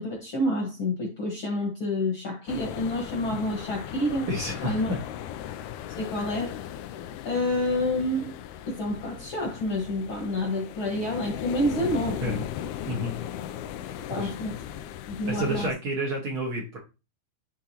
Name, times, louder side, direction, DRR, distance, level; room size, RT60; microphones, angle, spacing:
voice 1, 0.0-4.3 4.6-4.9 5.9-6.5 7.3-8.3 8.7-12.4 14.1-14.6 15.1-15.7, left 1 dB, 50° left, -1 dB, 1.7 m, -28 dB
sound 1, 2.5-15.7, left 11 dB, 80° left, 1.8 m, -37 dB
voice 2, 4.3-5.0 12.2-12.4 12.9-13.2 13.8-14.3 15.3-16.8, right 1 dB, 50° right, -2 dB, 1.8 m, -30 dB
11.0 x 3.7 x 2.8 m, 0.28 s
omnidirectional pair, 3.9 m